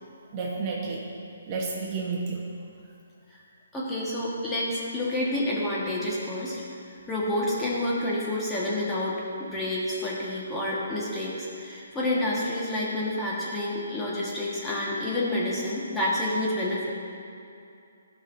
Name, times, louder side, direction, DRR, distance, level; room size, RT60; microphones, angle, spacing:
voice 1, 0.3-1.1 1.5-2.5, right 4 dB, 30° right, -3 dB, 1.1 m, -31 dB
voice 2, 3.7-6.6 7.1-16.9, left 1 dB, 10° left, -7 dB, 1.5 m, -29 dB
14.5 x 5.7 x 2.7 m, 2.6 s
hypercardioid pair, 145°, 0 cm